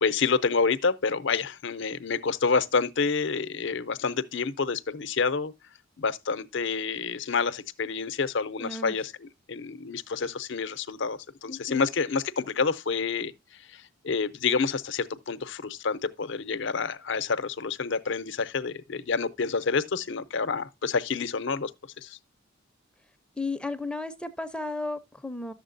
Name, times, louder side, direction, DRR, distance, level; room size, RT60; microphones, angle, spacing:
voice 1, 0.0-5.5 6.0-13.3 13.6-21.7 22.0-22.2, left 5 dB, 60° left, 0.6 m, -28 dB
voice 2, 8.6-8.9 11.5-11.9 23.4-25.5, left 2 dB, 5° left, 0.5 m, -34 dB
11.5 x 7.3 x 2.5 m
head